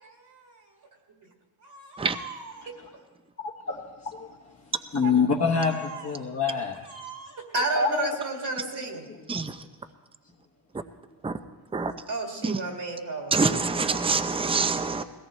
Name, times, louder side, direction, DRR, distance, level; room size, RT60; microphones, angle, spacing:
voice 1, 0.0-0.6 1.6-2.7 5.0-5.1 5.7-6.1 6.8-9.1 12.1-13.4, right 3 dB, 55° right, 1 dB, 2.3 m, -33 dB
voice 2, 3.4-4.5 4.9-6.8 7.7-8.2 8.5-8.6 9.1-9.3, left 5 dB, 35° left, -3 dB, 1.1 m, -27 dB
voice 3, 13.3-15.0, right 4 dB, 10° right, 10 dB, 0.5 m, -25 dB
21.5 x 17.0 x 3.2 m, 1.3 s
wide cardioid pair, 125°, 49 cm